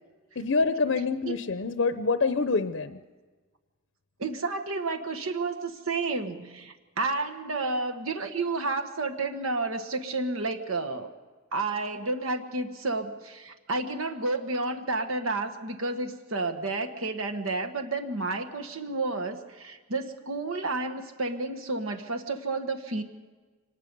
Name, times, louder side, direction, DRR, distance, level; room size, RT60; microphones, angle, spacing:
voice 1, 0.4-3.0, left 4 dB, 65° left, 11 dB, 0.6 m, -26 dB
voice 2, 4.2-11.1 11.5-23.0, right 3 dB, 90° right, 7 dB, 1.3 m, -31 dB
25.0 x 19.5 x 5.3 m, 1.3 s
head